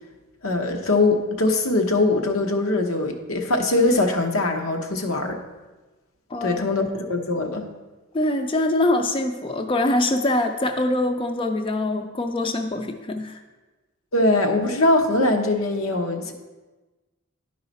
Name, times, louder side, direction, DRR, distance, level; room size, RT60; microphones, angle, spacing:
voice 1, 0.4-5.4 6.4-7.7 14.1-16.3, left 2 dB, 90° left, 3 dB, 0.9 m, -22 dB
voice 2, 8.1-13.4, left 1 dB, 25° left, 6 dB, 0.4 m, -23 dB
10.5 x 4.8 x 4.0 m, 1.2 s
head